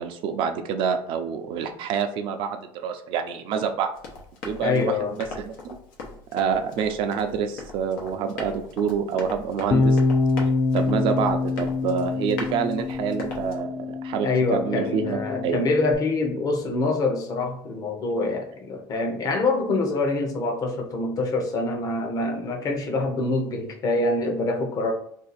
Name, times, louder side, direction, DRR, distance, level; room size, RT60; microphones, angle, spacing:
voice 1, 0.0-3.9 4.4-4.9 5.4-5.5 6.3-10.0 10.4-15.6, right 7 dB, 60° right, 0.5 m, -27 dB
Run, 3.9-13.6, left 3 dB, 90° left, 0.9 m, -40 dB
voice 2, 4.6-5.2 14.2-24.9, left 3 dB, 40° left, 0.8 m, -25 dB
Bass guitar, 9.7-16.0, left 3 dB, 25° left, 0.3 m, -25 dB
2.7 x 2.4 x 4.1 m
cardioid pair, 135°, 10 cm